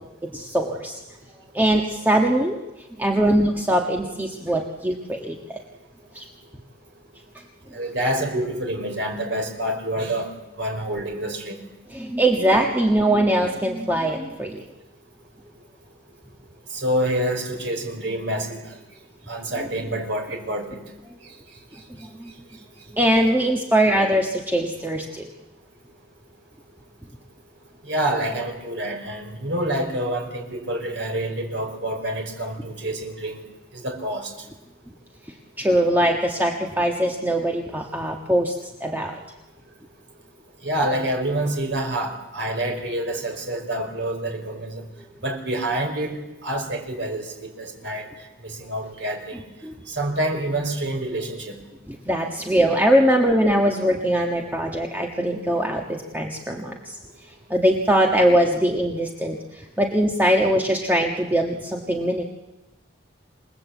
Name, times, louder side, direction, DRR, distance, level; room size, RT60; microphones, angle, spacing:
voice 1, 0.2-1.0 1.5-2.6 3.0-5.6 6.1-6.2 11.9-14.6 22.0-22.3 22.9-25.3 35.6-38.5 38.8-39.2 49.6-49.7 51.9-57.0 57.5-62.2, right 1 dB, 10° right, 1 dB, 1.5 m, -21 dB
voice 2, 7.7-10.3 10.6-11.5 16.7-18.6 19.3-20.8 27.9-33.4 33.8-34.3 40.6-44.8 45.2-47.3 47.6-48.1 48.4-49.3 49.9-51.6, right 1 dB, 65° right, 3 dB, 4.7 m, -27 dB
28.0 x 19.5 x 8.2 m, 1.0 s
head